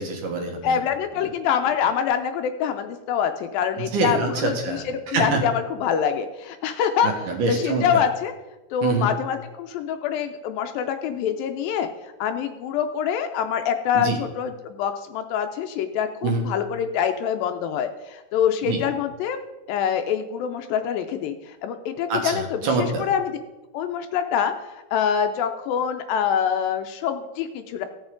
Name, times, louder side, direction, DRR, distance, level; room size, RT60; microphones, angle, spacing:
voice 1, 0.0-0.8 3.8-5.4 7.0-8.0 8.8-9.1 13.9-14.2 16.2-16.5 18.6-18.8 22.1-23.1, right 3 dB, 65° right, 2 dB, 2.7 m, -25 dB
voice 2, 0.6-7.1 7.5-8.3 8.7-19.4 19.7-23.4 23.7-27.9, left 8 dB, 80° left, 7 dB, 2.2 m, -25 dB
15.5 x 7.3 x 3.8 m, 1.1 s
omnidirectional pair, 4.3 m